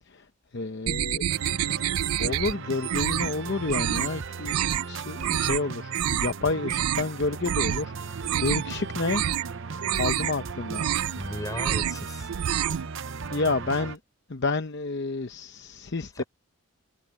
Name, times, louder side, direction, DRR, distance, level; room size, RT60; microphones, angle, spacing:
voice 1, 0.5-1.2 2.2-4.6 4.9-9.2 9.9-10.9 13.3-14.0 14.3-16.2, left 3 dB, 50° left, 0.8 m, -29 dB
sound 1, 0.9-2.5 2.8-3.3 3.7-4.1 4.4-4.8 5.2-5.6 5.9-6.3 6.6-7.1 7.4-7.8 8.2-8.7 9.0-9.5 9.8-10.3 10.7-11.2 11.5-12.0 12.3-12.9, right 11 dB, 80° right, 0.4 m, -27 dB
sound 2, 1.3-14.0, right 5 dB, 60° right, 0.7 m, -37 dB
voice 2, 11.1-12.3 16.1-16.3, left 1 dB, 15° left, 5.9 m, -36 dB
head